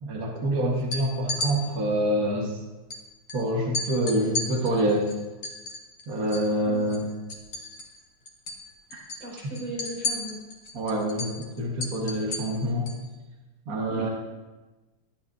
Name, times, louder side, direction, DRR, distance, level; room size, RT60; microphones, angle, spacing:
voice 1, 0.0-2.6 3.3-5.1 6.1-7.0 8.9-9.1 10.7-12.9 13.7-14.1, right 1 dB, 40° right, -2 dB, 1.5 m, -26 dB
sound 1, 0.8-1.5 2.9-3.0 3.3-3.4 3.7-6.5 6.8-8.0 8.3-8.6 8.9-13.0, left 2 dB, 45° left, 2.2 m, -33 dB
voice 2, 9.2-10.4 13.9-14.1, equal, 55° right, -5 dB, 6.5 m, -36 dB
20.0 x 13.0 x 2.8 m, 1.2 s
omnidirectional pair, 3.6 m